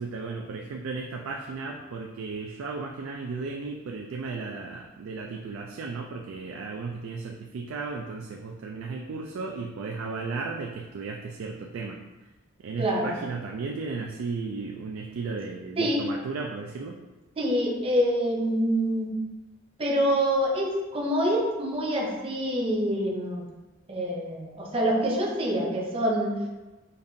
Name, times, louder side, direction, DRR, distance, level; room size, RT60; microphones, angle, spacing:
voice 1, 0.0-12.0 12.6-17.0, right 4 dB, 85° right, 1 dB, 0.3 m, -35 dB
voice 2, 12.8-13.1 15.8-16.1 17.4-19.1 19.8-23.4 23.9-26.4, equal, 30° right, -1 dB, 0.5 m, -26 dB
5.2 x 2.4 x 2.6 m, 1.2 s
head